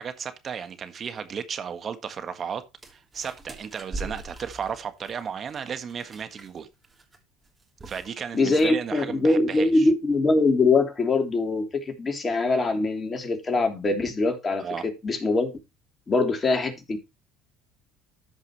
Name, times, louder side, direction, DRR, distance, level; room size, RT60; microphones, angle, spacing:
voice 1, 0.0-2.6 2.9-6.7 7.8-9.8 14.6-14.9, right 7 dB, 40° right, 1.5 m, -34 dB
sound 1, 2.8-6.6 6.8-7.2 7.4-8.1 8.4-8.7, right 2 dB, 20° right, 3.1 m, -40 dB
voice 2, 8.3-15.5 16.1-17.0, left 3 dB, 30° left, 3.0 m, -23 dB
13.5 x 5.5 x 3.1 m
hypercardioid pair, 75°, 0 cm